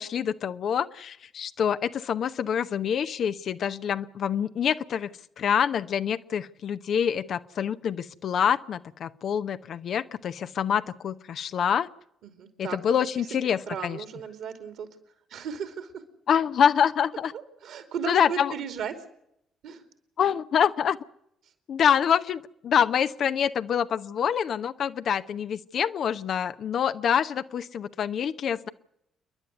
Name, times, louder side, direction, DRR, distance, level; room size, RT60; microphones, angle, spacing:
voice 1, 0.0-5.1 5.4-11.9 12.6-14.0 16.3-17.3 18.0-18.5 20.2-21.0 21.7-28.7, left 8 dB, 55° left, 11 dB, 0.8 m, -26 dB
voice 2, 12.2-13.3 13.7-14.9 15.3-16.0 17.3-19.0 19.6-19.8, right 7 dB, 60° right, 8 dB, 2.9 m, -36 dB
28.5 x 11.5 x 9.5 m, 0.79 s
figure-of-eight pair, 45°, 0 cm